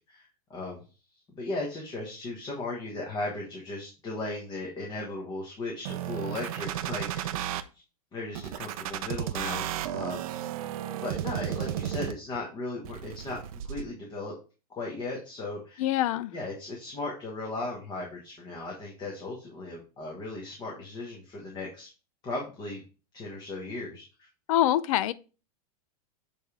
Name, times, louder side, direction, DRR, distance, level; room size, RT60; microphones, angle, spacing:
voice 1, 0.5-0.8 1.3-7.3 8.1-10.2 10.9-13.4 13.6-14.3 14.7-15.8 16.3-21.9 22.2-22.8 23.1-24.3, left 2 dB, 20° left, 1.3 m, -36 dB
sound 1, 5.8-7.6 8.3-12.4 12.8-13.8, right 11 dB, 65° right, 0.6 m, -33 dB
voice 2, 15.8-16.3 24.5-25.1, left 13 dB, 60° left, 0.5 m, -24 dB
7.5 x 3.4 x 3.6 m
supercardioid pair, 160°, 20 cm